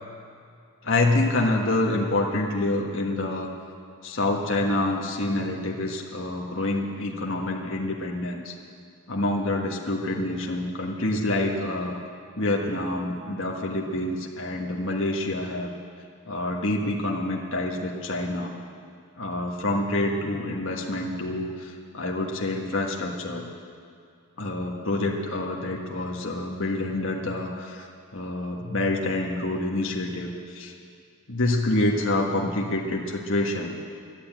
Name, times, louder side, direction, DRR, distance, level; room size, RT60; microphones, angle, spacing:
voice 1, 0.8-3.5 4.0-8.5 9.1-11.9 12.3-15.7 16.3-18.5 19.2-23.4 24.4-27.9 28.1-30.7 31.3-33.7, left 2 dB, 60° left, -1 dB, 1.5 m, -27 dB
12.0 x 11.5 x 8.9 m, 2.3 s
head